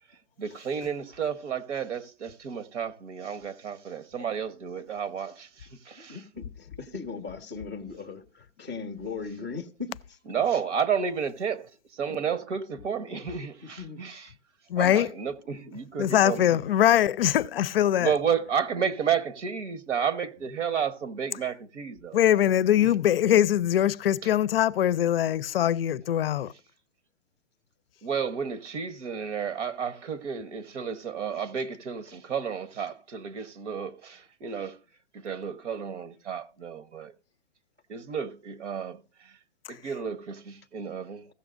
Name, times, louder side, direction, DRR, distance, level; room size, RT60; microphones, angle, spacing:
voice 1, 0.4-6.2 10.3-14.3 14.8-16.6 18.0-22.2 22.8-22.9 28.0-34.8 35.1-37.1 37.9-39.4 39.7-41.3, right 7 dB, 80° right, 1.2 m, -31 dB
voice 2, 6.0-10.2 12.1-12.2 13.6-14.0, left 4 dB, 15° right, 0.3 m, -38 dB
voice 3, 14.7-15.1 16.0-18.1 22.1-26.5 39.7-39.8, left 11 dB, 55° left, 0.5 m, -22 dB
16.0 x 7.1 x 2.5 m
hypercardioid pair, 165°, 35 cm